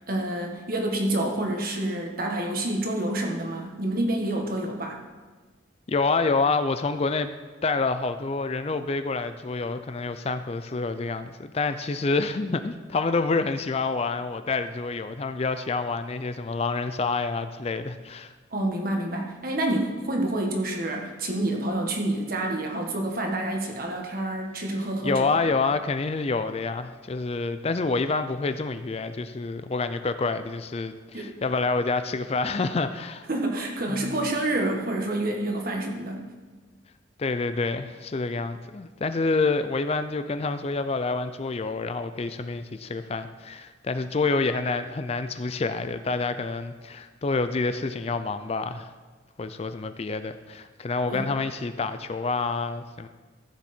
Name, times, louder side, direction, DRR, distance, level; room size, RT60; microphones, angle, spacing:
voice 1, 0.1-5.0 18.5-25.3 31.1-31.3 33.3-36.2 51.1-51.3, right 1 dB, 50° right, 2 dB, 1.6 m, -28 dB
voice 2, 5.9-7.3 7.6-18.3 25.0-33.3 33.9-34.3 37.2-48.9 49.4-53.1, left 3 dB, 30° left, 10 dB, 0.4 m, -27 dB
14.5 x 7.4 x 4.4 m, 1.4 s
head